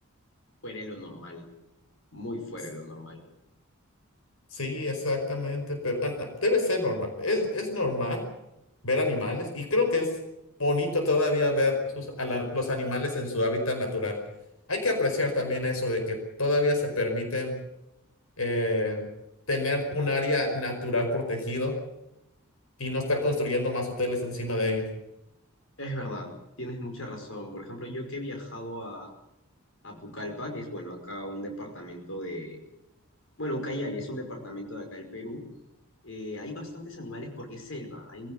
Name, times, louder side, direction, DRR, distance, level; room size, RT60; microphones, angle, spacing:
voice 1, 0.6-1.5 2.1-3.2 15.2-15.4 25.8-26.3 26.6-29.1 29.8-32.6 33.4-35.4 36.0-38.3, left 1 dB, 65° left, 3 dB, 5.3 m, -37 dB
voice 2, 4.5-8.2 8.8-10.1 10.6-14.2 14.7-17.5 18.4-19.0 19.5-21.7 22.8-24.9, left 2 dB, 80° left, 4 dB, 5.1 m, -27 dB
22.5 x 16.5 x 9.4 m, 0.89 s
head